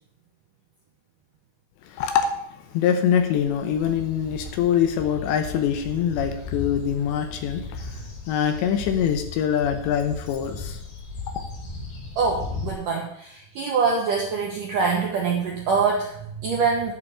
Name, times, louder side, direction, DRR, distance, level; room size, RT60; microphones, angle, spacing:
voice 1, 1.8-8.0 8.3-10.8, left 8 dB, 80° left, 7 dB, 2.9 m, -24 dB
sound 1, 3.1-12.7, left 3 dB, 55° left, 3.8 m, -37 dB
voice 2, 12.2-16.9, right 5 dB, 75° right, 0 dB, 1.9 m, -24 dB
11.0 x 5.7 x 8.0 m, 0.74 s
omnidirectional pair, 5.6 m